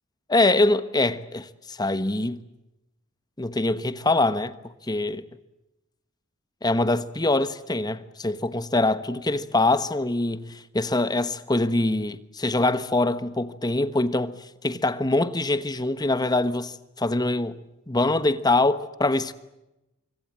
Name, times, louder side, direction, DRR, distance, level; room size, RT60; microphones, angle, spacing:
voice 1, 0.3-2.4 3.4-4.5 4.9-5.2 6.6-10.5 10.7-14.3 14.6-17.6 17.9-19.3, left 2 dB, 20° left, 1.2 m, -24 dB
25.0 x 24.5 x 7.5 m
head